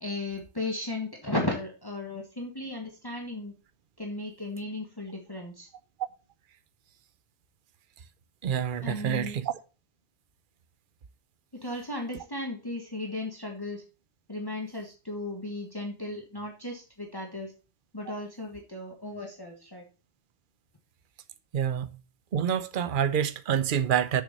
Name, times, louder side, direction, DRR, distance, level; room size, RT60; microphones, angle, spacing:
voice 1, 0.0-3.5 4.0-5.7 8.8-9.4 11.5-13.8 14.3-17.5 17.9-19.8, left 1 dB, 20° left, 1.5 m, -35 dB
voice 2, 8.4-9.5 21.5-22.0 22.3-24.2, right 8 dB, 55° right, 0.9 m, -27 dB
6.9 x 6.5 x 5.4 m
omnidirectional pair, 1.1 m